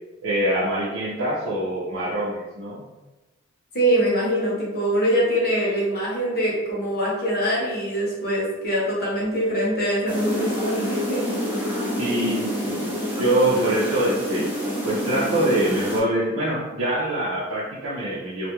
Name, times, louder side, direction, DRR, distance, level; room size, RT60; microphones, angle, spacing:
voice 1, 0.2-2.8 12.0-12.9 13.2-14.4 14.8-18.5, right 1 dB, 75° right, -8 dB, 0.5 m, -24 dB
voice 2, 3.7-11.2, right 1 dB, 45° left, -6 dB, 0.8 m, -23 dB
sound 1, 10.0-16.0, equal, 10° right, 0.5 m, -27 dB
2.2 x 2.1 x 2.9 m, 1.1 s
head